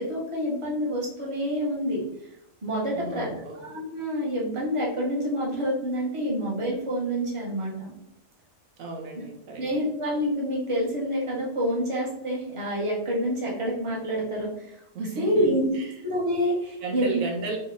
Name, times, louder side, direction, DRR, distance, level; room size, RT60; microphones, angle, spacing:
voice 1, 0.0-2.0 2.6-7.9 9.1-9.2 9.6-15.7 16.0-17.2, equal, 25° right, -4 dB, 1.2 m, -27 dB
voice 2, 2.9-3.7 8.8-9.8 14.9-15.9 16.8-17.6, right 3 dB, 80° right, 2 dB, 1.1 m, -35 dB
4.3 x 2.9 x 3.6 m, 0.80 s
omnidirectional pair, 1.4 m